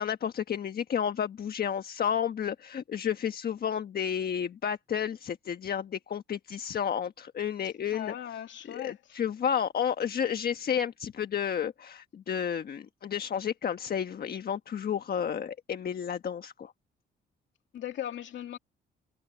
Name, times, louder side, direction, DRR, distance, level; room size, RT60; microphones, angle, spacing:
voice 1, 0.0-8.1 8.6-16.7, left 8 dB, 50° left, 1.3 m, -31 dB
voice 2, 7.9-9.0 17.7-18.6, left 11 dB, 70° left, 2.6 m, -38 dB
cardioid pair, 90°, 20 cm